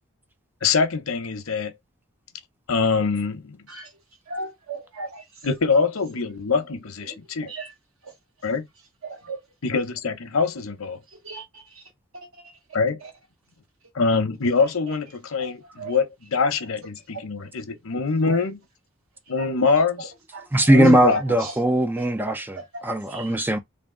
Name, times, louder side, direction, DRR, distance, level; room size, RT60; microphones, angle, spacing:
voice 1, 0.6-1.7 2.7-3.6 5.4-7.5 8.4-8.7 9.6-11.0 12.7-13.0 13.9-18.6 19.3-20.0 20.7-21.2, left 4 dB, 85° left, 0.8 m, -24 dB
voice 2, 4.3-5.3 6.5-6.6 7.0-7.1 7.4-7.7 8.0-8.1 9.0-9.4 11.1-11.8 12.1-12.6 13.0-13.1 14.9-15.0 15.4-16.0 18.2-18.4 19.4-20.7 21.1-21.5 22.0-22.8 23.1-23.4, right 3 dB, 90° right, 1.2 m, -38 dB
voice 3, 20.5-23.6, right 1 dB, 10° right, 0.4 m, -20 dB
3.5 x 2.4 x 3.7 m
head